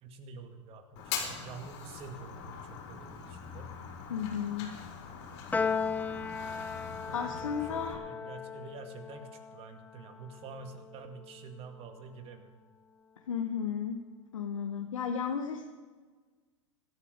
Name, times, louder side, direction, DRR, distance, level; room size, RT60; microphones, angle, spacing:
voice 1, 0.0-2.6 2.9-3.7 7.0-7.3 7.6-12.5, right 5 dB, 35° right, 6 dB, 2.1 m, -47 dB
Fire, 1.0-7.9, left 6 dB, 50° left, 4.4 m, -42 dB
voice 2, 4.1-4.7 7.1-8.0 13.3-14.0 14.3-15.7, left 7 dB, 85° left, 3 dB, 1.3 m, -33 dB
Piano, 5.5-12.0, left 5 dB, 10° left, 0.6 m, -37 dB
16.5 x 13.0 x 5.3 m, 1.4 s
hypercardioid pair, 110°, 17 cm